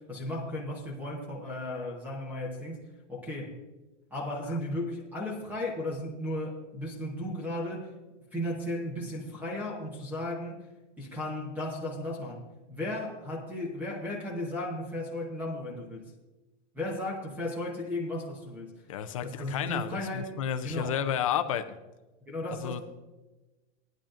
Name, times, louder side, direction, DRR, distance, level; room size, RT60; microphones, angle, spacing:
voice 1, 0.0-2.8 3.1-3.6 4.1-7.9 8.3-10.6 11.0-12.4 12.7-16.1 16.7-18.7 19.2-20.4 20.6-21.0 22.2-22.8, left 1 dB, 5° right, -2 dB, 0.9 m, -35 dB
voice 2, 18.9-21.6 22.6-22.8, left 9 dB, 30° left, 9 dB, 0.4 m, -31 dB
17.5 x 10.5 x 2.5 m, 1.1 s
supercardioid pair, 175°, 35 cm